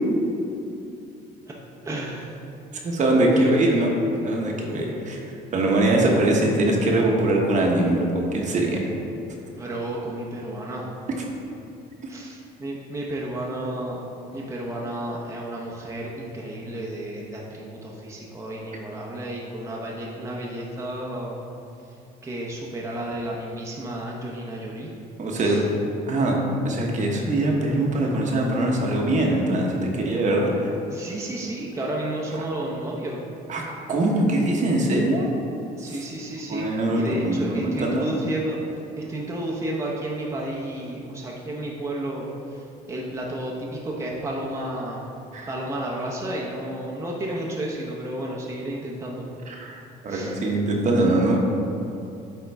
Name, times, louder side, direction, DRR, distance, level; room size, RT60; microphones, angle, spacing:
voice 1, 1.8-2.3 3.3-3.5 9.5-10.9 12.1-14.1 14.3-21.4 22.2-24.9 25.3-25.6 30.9-33.2 35.8-45.0 45.5-49.3 50.1-50.3, right 1 dB, 15° right, -3 dB, 0.8 m, -32 dB
voice 2, 2.8-3.9 4.2-5.2 5.5-8.8 25.2-25.6 26.1-26.4 26.6-30.7 33.5-33.6 33.9-35.3 35.9-36.0 36.5-38.1 45.3-45.5 49.5-51.4, right 1 dB, 45° right, -1 dB, 1.0 m, -22 dB
8.7 x 3.7 x 3.4 m, 2.8 s
cardioid pair, 110°, 17 cm